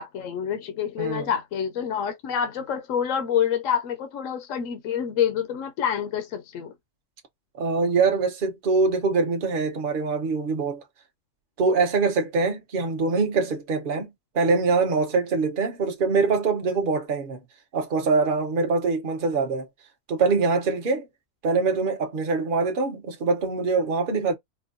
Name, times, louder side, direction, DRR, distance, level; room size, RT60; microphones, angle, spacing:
voice 1, 0.0-6.7, left 8 dB, 70° left, 1.0 m, -27 dB
voice 2, 1.0-1.3 7.6-10.8 11.6-14.1 14.3-17.4 17.7-19.7 20.1-21.1 21.4-24.3, right 4 dB, 45° right, 1.0 m, -24 dB
4.3 x 2.2 x 2.5 m
omnidirectional pair, 1.4 m